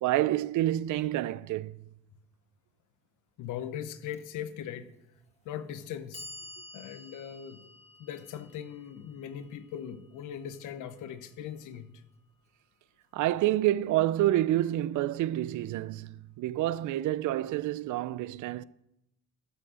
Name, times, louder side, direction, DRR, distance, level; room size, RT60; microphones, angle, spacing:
voice 1, 0.0-1.8 13.1-18.6, right 14 dB, 75° right, 0.5 m, -28 dB
voice 2, 3.4-4.9 5.4-6.3 6.7-7.7 8.0-11.9, left 9 dB, 90° left, 0.9 m, -40 dB
Clock, 4.1-4.2 5.2-5.3 5.8-11.9, left 2 dB, 20° left, 1.7 m, -51 dB
12.5 x 6.1 x 6.3 m
cardioid pair, 90°, 30 cm